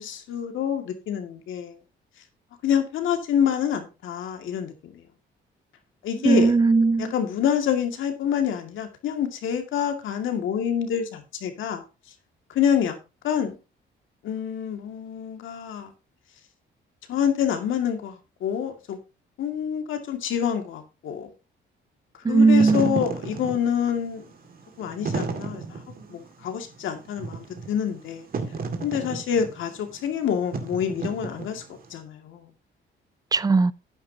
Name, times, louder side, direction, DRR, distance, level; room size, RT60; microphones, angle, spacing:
voice 1, 0.0-1.8 2.6-5.1 6.0-6.5 7.0-11.8 12.5-13.0 13.2-13.6 14.2-15.9 17.1-19.0 19.4-21.3 22.3-24.2 24.8-25.8 26.1-28.3 28.8-31.6 31.9-32.5, left 8 dB, 80° left, 2.2 m, -27 dB
voice 2, 6.2-7.1 22.2-23.0 33.3-33.7, right 4 dB, 20° right, 0.5 m, -18 dB
Wind / Fire, 22.4-31.9, right 4 dB, 45° right, 2.2 m, -34 dB
12.5 x 9.5 x 2.8 m
cardioid pair, 90°, 20 cm